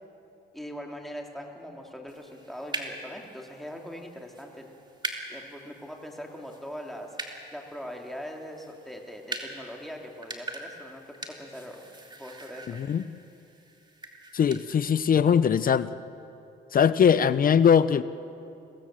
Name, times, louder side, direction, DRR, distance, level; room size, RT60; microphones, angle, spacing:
voice 1, 0.5-4.7 5.3-7.2 7.5-11.8 12.1-12.7, equal, ahead, 1 dB, 3.0 m, -41 dB
sound 1, 2.1-14.6, right 2 dB, 20° right, 2.7 m, -42 dB
voice 2, 12.7-13.0 14.3-15.9 16.7-18.0, left 7 dB, 45° left, 15 dB, 0.6 m, -21 dB
23.5 x 17.0 x 7.6 m, 2.7 s
cardioid pair, 90°, 20 cm